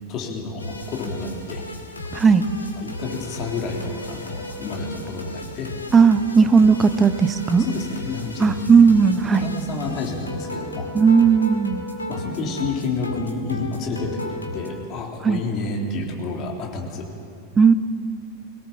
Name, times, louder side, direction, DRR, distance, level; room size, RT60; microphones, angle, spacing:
voice 1, 0.1-1.6 2.8-5.7 7.6-8.7 9.3-10.9 12.1-17.1, left 3 dB, 35° left, 0 dB, 3.5 m, -30 dB
sound 1, 0.6-14.7, left 1 dB, 80° left, 2.1 m, -35 dB
voice 2, 2.1-2.4 5.9-7.7 8.4-9.5 10.9-11.9 15.2-15.4 17.6-17.7, right 5 dB, 20° right, 12 dB, 1.0 m, -16 dB
22.5 x 18.0 x 7.4 m, 2.5 s
figure-of-eight pair, 90°, 0 cm